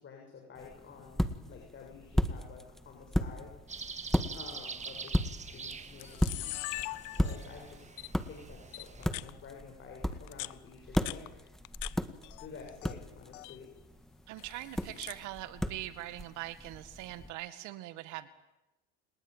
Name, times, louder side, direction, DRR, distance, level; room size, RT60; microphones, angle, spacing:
voice 1, 0.0-3.5 4.3-6.7 7.1-7.9 8.3-11.2 12.4-13.7, left 5 dB, 40° left, 1 dB, 7.0 m, -50 dB
sound 1, 0.5-17.3, equal, ahead, 1.7 m, -36 dB
sound 2, 3.7-9.1, right 5 dB, 20° right, 1.8 m, -45 dB
Camera, 4.8-5.1 5.7-5.8 6.0-7.6 8.0-8.1 8.7-9.3 10.1-11.9 12.2-12.9 13.2-13.6 14.4-15.2, left 22 dB, 70° left, 0.9 m, -41 dB
voice 2, 14.3-18.3, right 15 dB, 65° right, 12 dB, 2.0 m, -42 dB
29.5 x 19.5 x 9.1 m, 1.0 s
supercardioid pair, 110°, 31 cm